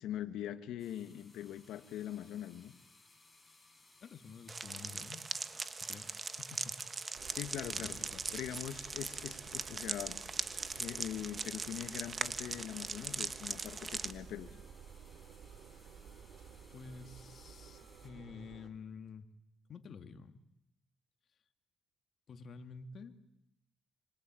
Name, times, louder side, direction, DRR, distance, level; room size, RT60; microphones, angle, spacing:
voice 1, 0.0-2.7 7.3-8.0 8.3-10.2 10.8-14.5, left 11 dB, 85° left, 11 dB, 1.6 m, -42 dB
sound 1, 0.8-18.1, left 2 dB, 15° left, 6.5 m, -64 dB
voice 2, 4.0-6.8 7.7-8.2 16.7-19.3 19.7-20.4 22.3-23.2, left 5 dB, 55° left, 7 dB, 2.3 m, -50 dB
sound 2, 4.5-14.1, right 4 dB, 35° right, 1.3 m, -40 dB
Engine, 7.1-18.7, right 6 dB, 70° right, 3.0 m, -54 dB
25.5 x 25.5 x 9.1 m, 0.82 s
cardioid pair, 90°, 0 cm